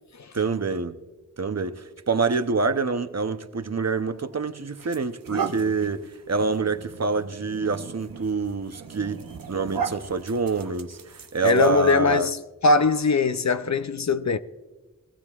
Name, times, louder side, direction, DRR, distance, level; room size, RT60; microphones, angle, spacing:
voice 1, 0.3-1.0 1.4-9.2 9.5-12.3, right 4 dB, 50° right, 0.8 m, -26 dB
sound 1, 4.0-4.2 4.7-12.1, right 6 dB, 90° right, 0.8 m, -36 dB
voice 2, 11.4-12.4 12.6-14.4, left 4 dB, 55° left, 0.6 m, -21 dB
21.5 x 15.0 x 2.4 m
wide cardioid pair, 50°, 33 cm